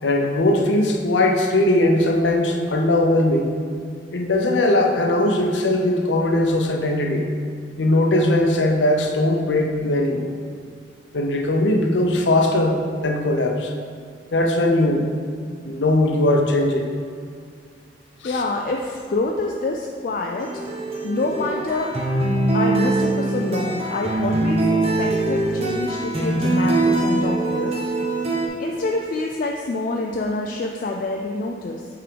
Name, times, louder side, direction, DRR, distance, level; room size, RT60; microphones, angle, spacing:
voice 1, 0.0-3.5 4.1-7.3 7.8-10.3 11.1-12.7 13.0-13.7 14.3-15.1 15.6-16.9 18.2-18.4, left 1 dB, 85° left, 2 dB, 0.7 m, -19 dB
voice 2, 18.2-20.6 21.0-21.9 22.5-24.6 25.0-27.8 28.6-31.9, left 2 dB, 50° left, 1 dB, 0.4 m, -26 dB
sound 1, 20.4-28.5, right 2 dB, 35° right, 0.9 m, -22 dB
5.9 x 3.7 x 5.0 m, 2.1 s
head